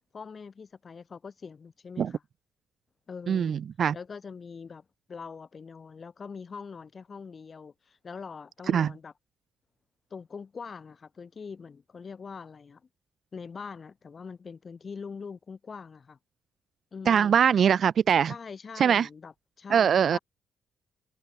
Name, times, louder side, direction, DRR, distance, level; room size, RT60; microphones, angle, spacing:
voice 1, 0.1-2.2 3.1-3.6 3.9-9.1 10.1-12.8 13.3-16.2 16.9-17.4 18.3-20.2, left 5 dB, 40° left, 5.7 m, -43 dB
voice 2, 3.3-3.9 8.7-8.9 17.1-18.3 18.8-19.1 19.7-20.2, right 8 dB, 55° right, 1.2 m, -22 dB
cardioid pair, 90°, 0 cm